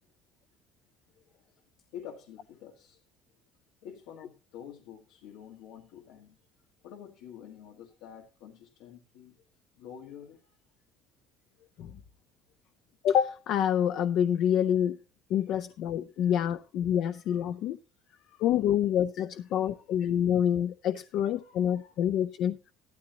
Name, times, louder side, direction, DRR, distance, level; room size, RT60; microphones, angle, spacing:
voice 1, 1.1-1.6 1.9-3.0 3.8-6.5 6.8-9.4 9.7-10.6 11.6-11.7 14.8-14.9 15.6-15.7 16.1-16.7 17.0-17.7 18.0-18.6 19.2-19.8 21.0-22.0, left 9 dB, 85° left, 1.6 m, -50 dB
voice 2, 13.0-15.0 15.3-17.8 18.4-22.6, left 9 dB, 60° left, 0.5 m, -27 dB
14.0 x 12.5 x 2.9 m
cardioid pair, 150°, 0 cm